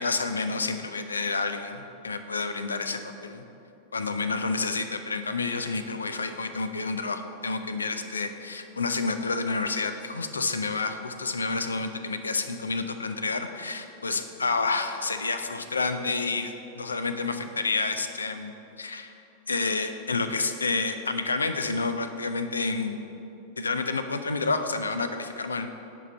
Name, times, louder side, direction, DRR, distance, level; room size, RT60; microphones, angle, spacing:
voice 1, 0.0-3.4 3.9-18.5 18.8-19.1 19.5-23.0 23.6-25.7, left 3 dB, 75° left, 8 dB, 0.4 m, -29 dB
8.1 x 4.6 x 5.5 m, 2.9 s
figure-of-eight pair, 90°, 0 cm